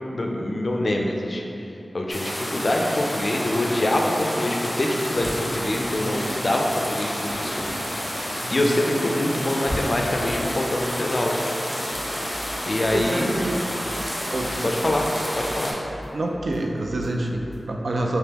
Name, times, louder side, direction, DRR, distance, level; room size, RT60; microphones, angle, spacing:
voice 1, 0.1-1.4 1.9-7.6 8.5-11.4 12.6-13.4 14.6-15.1 15.4-15.8, left 1 dB, 50° left, 1 dB, 0.4 m, -25 dB
sound 1, 2.1-15.7, equal, 25° left, 0.7 m, -30 dB
Door, 5.1-5.6 6.8-8.4 9.6-10.1, equal, 30° right, 1.1 m, -34 dB
voice 2, 8.4-8.7 12.9-13.6 14.3-14.8 16.1-18.2, right 2 dB, 70° right, 1 dB, 0.3 m, -27 dB
sound 2, 11.9-17.6, equal, 10° left, 1.2 m, -42 dB
3.5 x 2.9 x 2.9 m, 2.9 s
wide cardioid pair, 55°, 0 cm